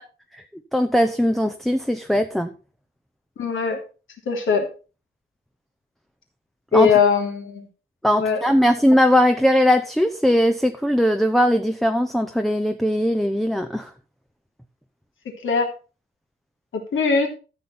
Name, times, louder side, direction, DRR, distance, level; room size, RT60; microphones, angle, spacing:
voice 1, 0.7-2.5 6.7-7.0 8.0-13.9, equal, ahead, 7 dB, 0.7 m, -19 dB
voice 2, 3.4-3.8 4.3-4.7 6.7-7.7 8.2-8.4 15.4-15.7 16.7-17.3, left 5 dB, 75° left, 2 dB, 3.4 m, -20 dB
13.5 x 7.1 x 4.3 m, 0.33 s
wide cardioid pair, 175°, 21 cm